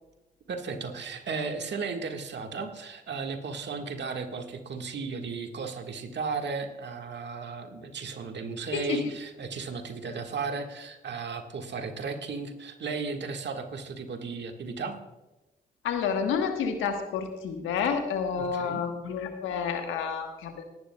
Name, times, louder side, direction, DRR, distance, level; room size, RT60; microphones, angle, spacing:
voice 1, 0.5-14.9 18.3-18.8, right 4 dB, 60° right, 5 dB, 1.6 m, -35 dB
voice 2, 15.8-20.6, left 6 dB, 80° left, 5 dB, 1.3 m, -29 dB
19.0 x 11.0 x 2.2 m, 1.0 s
hypercardioid pair, 45°, 20 cm